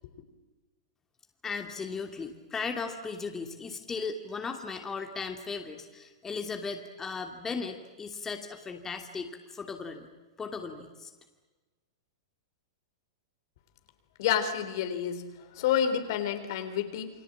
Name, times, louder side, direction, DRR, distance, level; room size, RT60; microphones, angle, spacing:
voice 1, 1.4-10.1 10.4-11.1, left 4 dB, 15° left, 4 dB, 2.8 m, -37 dB
voice 2, 14.2-17.1, left 9 dB, 60° left, 8 dB, 3.7 m, -29 dB
29.5 x 23.5 x 8.8 m, 1.2 s
hypercardioid pair, 110°, 2 cm